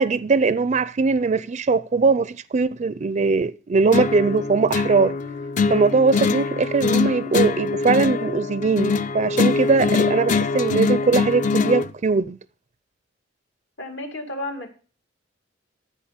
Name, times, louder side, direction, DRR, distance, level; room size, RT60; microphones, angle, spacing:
voice 1, 0.0-5.2 5.7-12.4, right 4 dB, 40° right, 0.4 m, -20 dB
sound 1, 3.9-11.9, left 4 dB, 40° left, 0.5 m, -23 dB
voice 2, 13.8-14.7, left 1 dB, 70° left, 2.4 m, -32 dB
14.0 x 5.3 x 5.1 m
head